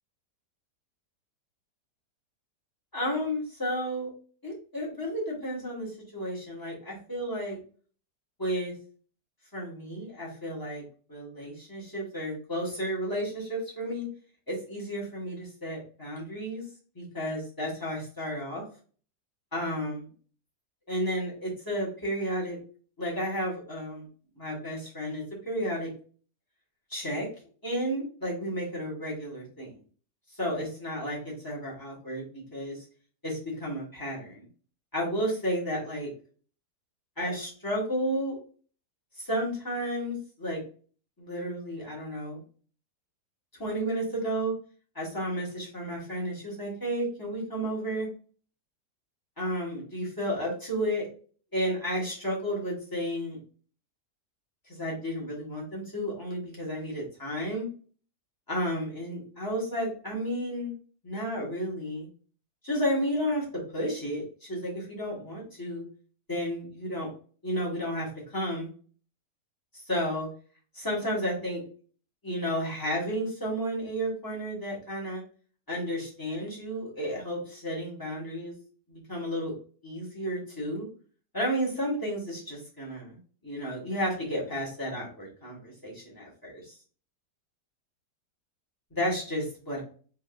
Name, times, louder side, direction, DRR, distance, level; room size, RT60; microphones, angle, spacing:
voice 1, 2.9-4.1 4.4-7.6 8.4-8.7 9.5-10.8 11.1-14.1 14.5-16.6 16.9-18.6 19.5-20.1 20.9-22.6 23.0-24.1 24.4-25.9 26.9-27.3 27.6-29.7 30.3-32.8 33.2-34.5 34.9-36.1 37.2-38.4 39.1-40.6 41.2-42.4 43.6-44.5 44.9-48.1 49.4-51.1 51.5-53.4 54.7-57.6 58.5-60.7 61.0-62.1 62.6-65.8 66.3-67.1 67.4-68.7 69.7-70.3 70.7-71.6 72.2-75.2 75.7-78.5 78.9-79.5 79.8-80.9 81.3-86.8 88.9-89.8, equal, 15° left, -4 dB, 1.0 m, -32 dB
3.6 x 2.8 x 2.3 m, 0.41 s
omnidirectional pair, 1.8 m